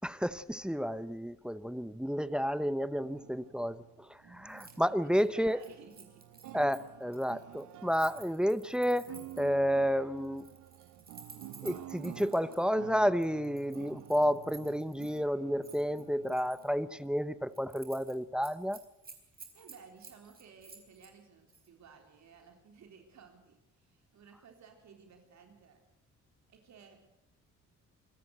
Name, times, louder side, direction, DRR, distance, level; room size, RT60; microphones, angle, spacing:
voice 1, 0.0-5.6 6.5-10.5 11.6-18.8, equal, 5° right, 16 dB, 0.8 m, -31 dB
sound 1, 2.8-17.5, right 14 dB, 85° right, 0.9 m, -50 dB
Keys jangling, 4.5-4.8 5.0-9.6 10.2-12.6 13.2-15.2 15.6-16.7 17.1-17.2 17.5-18.1 18.4-21.1 21.5-21.7, right 4 dB, 30° right, 4.3 m, -54 dB
voice 2, 4.9-6.3 19.1-25.8 26.5-27.0, right 6 dB, 65° right, 4 dB, 3.8 m, -57 dB
25.0 x 13.5 x 8.0 m, 0.87 s
cardioid pair, 90°, 30 cm